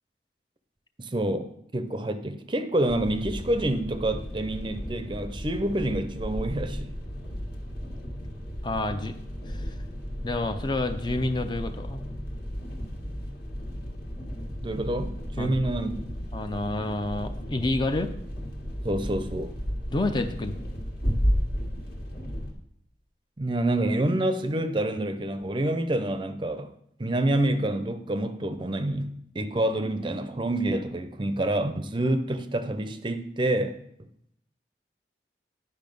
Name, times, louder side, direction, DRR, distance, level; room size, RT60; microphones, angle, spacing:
voice 1, 1.0-7.0 14.6-15.9 18.8-19.5 23.4-26.7 27.0-33.8, right 1 dB, 25° right, 9 dB, 0.6 m, -27 dB
sound 1, 2.9-22.5, equal, 60° left, 1.7 m, -34 dB
voice 2, 8.6-9.1 9.5-9.7 10.2-12.0 15.4-15.5 16.3-18.1 19.9-20.6, left 2 dB, 25° left, 8 dB, 0.5 m, -29 dB
10.5 x 5.6 x 5.3 m, 0.73 s
head